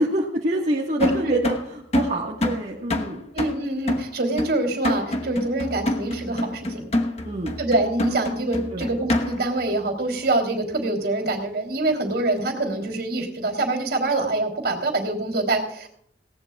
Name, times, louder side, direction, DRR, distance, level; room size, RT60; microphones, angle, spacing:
voice 1, 0.0-3.3 7.2-7.5 8.7-8.9, right 1 dB, 35° right, -2 dB, 1.6 m, -26 dB
sound 1, 1.0-9.6, left 1 dB, 35° left, 1.2 m, -27 dB
voice 2, 1.0-1.4 3.3-6.9 7.6-15.9, right 2 dB, 55° right, 3 dB, 3.4 m, -25 dB
19.0 x 17.5 x 2.4 m, 0.66 s
head